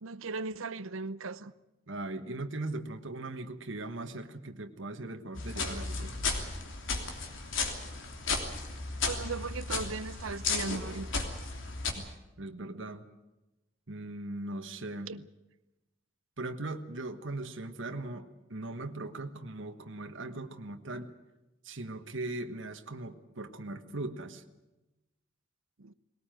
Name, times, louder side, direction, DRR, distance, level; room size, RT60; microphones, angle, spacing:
voice 1, 0.0-1.5 9.0-11.3 15.1-15.2 25.8-25.9, right 4 dB, 85° right, 0.8 m, -38 dB
voice 2, 1.9-6.1 11.9-12.0 12.4-13.0 13.9-15.1 16.4-21.1 21.6-24.4, right 2 dB, 65° right, 1.5 m, -39 dB
sound 1, 5.4-11.9, left 4 dB, 70° left, 3.2 m, -34 dB
21.0 x 18.0 x 9.1 m
head